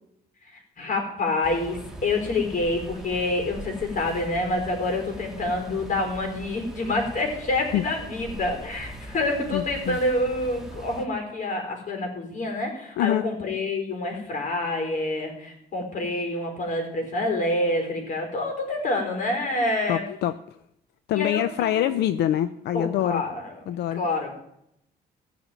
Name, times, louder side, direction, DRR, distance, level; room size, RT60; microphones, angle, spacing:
voice 1, 0.5-20.0 21.1-21.9 22.7-23.5 24.0-24.3, left 2 dB, 50° left, 3 dB, 4.3 m, -27 dB
sound 1, 1.4-11.0, right 1 dB, 5° right, 1.7 m, -41 dB
voice 2, 9.5-10.0 13.0-13.2 19.9-20.3 21.1-23.2 23.7-24.0, left 11 dB, 85° left, 13 dB, 0.6 m, -25 dB
15.5 x 5.8 x 9.2 m, 0.78 s
cardioid pair, 115°, 17 cm